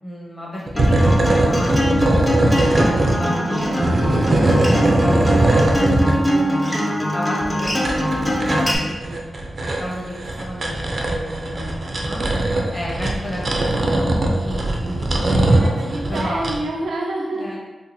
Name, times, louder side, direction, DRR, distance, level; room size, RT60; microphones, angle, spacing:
voice 1, 0.0-2.3 2.7-4.1 4.4-5.4 5.7-6.6 7.1-9.2 9.6-12.2 12.7-13.9 14.2-16.6 17.3-17.6, equal, 35° left, -5 dB, 1.1 m, -32 dB
sound 1, 0.7-3.2 3.6-6.1 7.4-16.6, right 1 dB, 45° right, 0.5 m, -20 dB
Acoustic guitar, 0.8-8.7, equal, 10° left, 0.6 m, -22 dB
voice 2, 3.1-4.6 12.3-12.8 15.4-17.6, right 2 dB, 90° right, -2 dB, 0.6 m, -30 dB
3.8 x 2.4 x 2.7 m, 1.2 s
wide cardioid pair, 90°, 0 cm